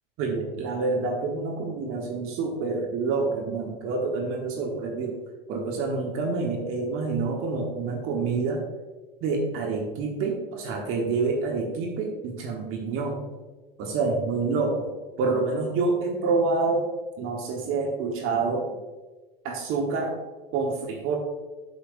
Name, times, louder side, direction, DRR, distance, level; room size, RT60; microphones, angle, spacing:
voice 1, 0.2-5.2 5.5-8.6 9.2-13.2 13.8-14.9 15.2-16.9 17.2-18.7 19.4-20.2 20.5-21.2, right 4 dB, 45° right, 1 dB, 1.4 m, -27 dB
9.4 x 6.7 x 2.6 m, 1.2 s
hypercardioid pair, 85°, 29 cm